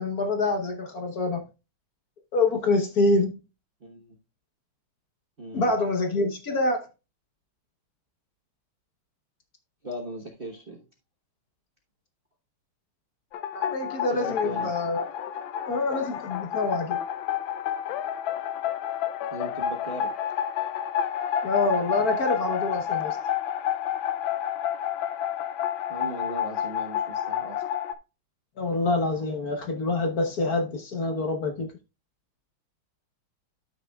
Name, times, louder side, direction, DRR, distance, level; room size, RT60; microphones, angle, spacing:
voice 1, 0.0-1.4 2.3-3.4 5.5-6.9 13.5-15.0 15.7-17.0 21.4-23.2 28.6-31.7, left 2 dB, 50° left, 1.3 m, -26 dB
voice 2, 3.8-4.2 5.4-5.7 9.8-10.8 14.1-14.7 19.3-20.1 25.9-27.6, right 1 dB, 35° right, 0.9 m, -37 dB
sound 1, 13.3-27.9, left 9 dB, 75° left, 1.4 m, -30 dB
12.0 x 6.1 x 2.3 m
omnidirectional pair, 2.3 m